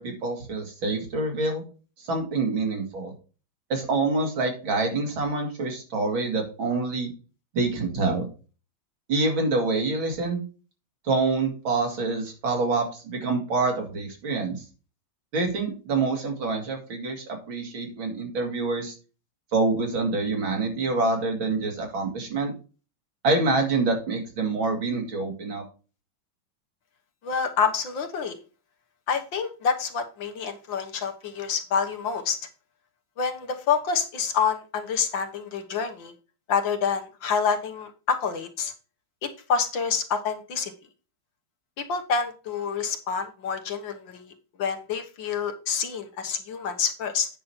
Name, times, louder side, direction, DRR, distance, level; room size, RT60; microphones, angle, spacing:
voice 1, 0.0-1.6 2.0-3.1 3.7-7.1 7.5-8.3 9.1-10.4 11.0-14.6 15.3-18.9 19.5-22.5 23.2-25.6, right 3 dB, 70° right, 3 dB, 3.1 m, -26 dB
voice 2, 27.2-28.4 29.1-32.4 33.2-36.1 36.5-38.7 39.2-40.7 41.8-44.3 44.6-47.3, left 6 dB, 65° left, 6 dB, 1.8 m, -27 dB
9.2 x 6.2 x 4.3 m, 0.34 s
omnidirectional pair, 2.3 m